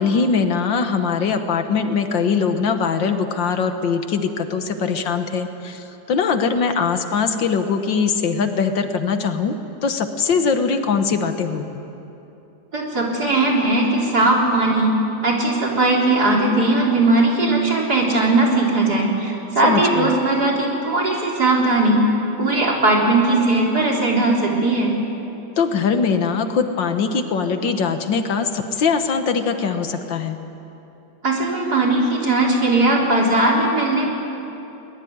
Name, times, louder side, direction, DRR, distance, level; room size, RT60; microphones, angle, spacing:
voice 1, 0.0-9.6 9.8-11.7 19.6-20.1 25.6-30.4, left 5 dB, 75° left, 7 dB, 2.0 m, -21 dB
voice 2, 12.7-15.0 15.2-22.0 22.4-24.9 31.2-34.1, right 2 dB, 55° right, -2 dB, 4.4 m, -18 dB
23.5 x 20.5 x 9.5 m, 2.9 s
omnidirectional pair, 2.1 m